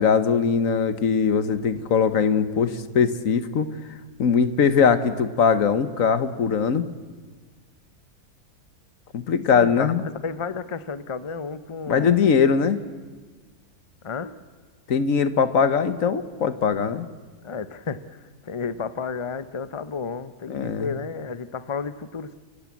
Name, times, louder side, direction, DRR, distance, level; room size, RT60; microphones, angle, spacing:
voice 1, 0.0-3.7 4.2-6.9 9.1-10.0 11.9-12.8 14.9-17.1 20.5-20.9, left 6 dB, 60° left, 12 dB, 1.4 m, -21 dB
voice 2, 9.5-12.2 14.0-14.4 17.4-22.3, left 5 dB, 40° left, 14 dB, 0.4 m, -32 dB
30.0 x 15.0 x 8.4 m, 1.4 s
omnidirectional pair, 1.6 m